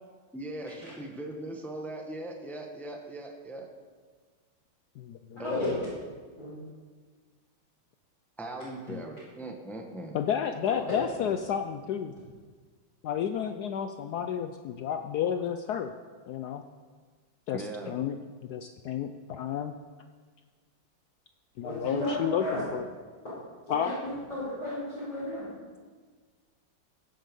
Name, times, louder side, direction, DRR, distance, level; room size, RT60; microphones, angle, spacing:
voice 1, 0.3-3.7 5.4-5.7 8.4-10.2 10.7-10.9 17.5-17.9, right 2 dB, ahead, 2 dB, 0.8 m, -39 dB
voice 2, 5.0-5.6 8.9-9.0 10.1-12.1 13.0-15.9 16.3-16.6 17.5-19.7 21.6-22.8 23.7-23.9, left 8 dB, 80° left, 7 dB, 0.8 m, -31 dB
voice 3, 21.6-22.6 23.7-25.5, left 1 dB, 45° left, -11 dB, 5.1 m, -34 dB
16.0 x 7.8 x 5.3 m, 1.5 s
omnidirectional pair, 2.2 m